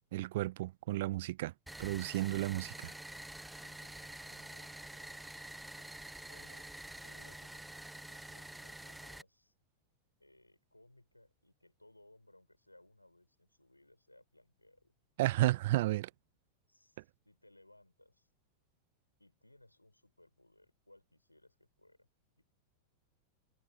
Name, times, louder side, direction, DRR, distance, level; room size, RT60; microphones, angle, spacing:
voice 1, 0.1-1.5 1.8-2.9 15.2-16.1, right 17 dB, 55° right, 0.6 m, -32 dB
sound 1, 1.7-9.2, right 1 dB, 5° right, 1.2 m, -48 dB
voice 2, 3.5-5.9 6.2-6.7 7.0-9.5 10.2-14.9 16.7-18.3 19.2-22.1 22.4-22.5, left 1 dB, 85° left, 7.3 m, -64 dB
figure-of-eight pair, 90°, 0 cm